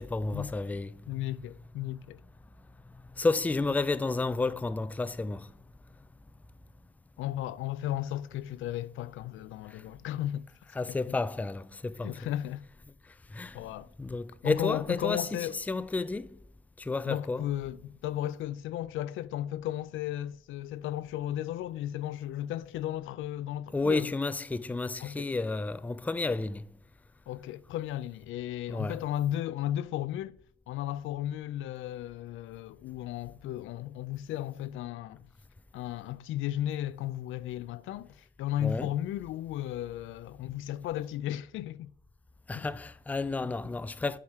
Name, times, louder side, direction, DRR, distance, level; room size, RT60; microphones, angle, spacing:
voice 1, 0.0-0.9 3.2-5.5 10.7-12.3 13.3-13.6 14.0-16.3 16.8-17.5 23.7-26.7 28.7-29.0 38.6-38.9 42.5-44.2, left 3 dB, 10° left, 0.3 m, -31 dB
voice 2, 1.1-2.2 7.2-10.5 12.0-12.6 13.5-13.9 14.4-15.6 17.1-24.1 25.0-25.3 27.3-30.4 30.7-35.3 35.7-41.9 42.5-42.7 43.6-43.7, left 12 dB, 80° left, 0.4 m, -35 dB
7.3 x 4.9 x 4.2 m
cardioid pair, 90°, 20 cm